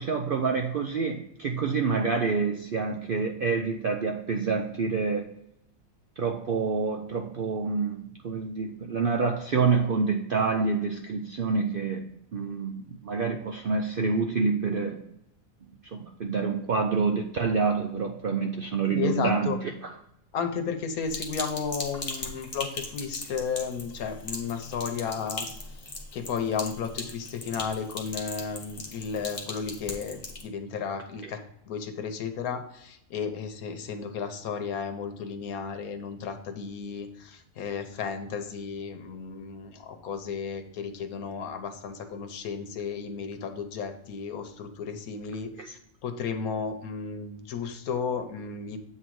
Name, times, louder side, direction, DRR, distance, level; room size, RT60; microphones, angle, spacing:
voice 1, 0.0-5.3 6.2-12.0 12.3-15.0 15.8-19.5 31.2-31.3 45.6-45.7, right 4 dB, 60° right, 3 dB, 0.6 m, -27 dB
voice 2, 18.9-19.6 20.3-25.5 25.8-31.4 31.7-45.5 46.0-48.8, left 6 dB, 85° left, 7 dB, 1.3 m, -33 dB
Sink (filling or washing), 21.1-30.4, left 2 dB, 30° left, 1.1 m, -39 dB
8.1 x 3.8 x 4.6 m, 0.79 s
omnidirectional pair, 1.5 m